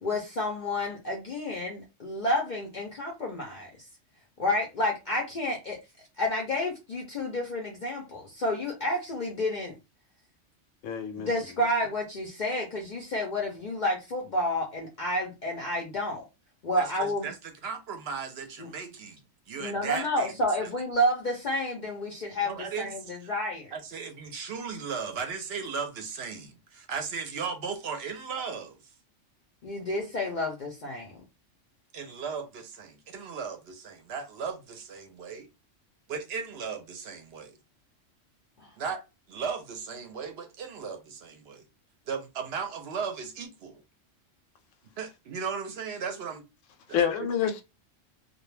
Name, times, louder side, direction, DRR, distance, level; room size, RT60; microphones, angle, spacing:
voice 1, 0.0-3.9 4.4-5.8 6.2-9.7 11.2-16.2 16.6-17.3 18.6-18.7 19.6-23.7 29.6-31.1 38.6-38.7, left 1 dB, 55° left, 0.5 m, -30 dB
voice 2, 10.8-11.3 46.9-47.6, left 8 dB, 80° left, 0.9 m, -27 dB
voice 3, 16.8-19.2 19.5-20.7 22.4-23.3 23.7-28.8 31.9-35.5 36.1-37.6 38.8-39.0 39.3-41.6 42.1-43.8 45.0-46.4 46.9-47.0, right 6 dB, 65° right, 0.7 m, -36 dB
2.2 x 2.1 x 3.1 m
omnidirectional pair, 1.3 m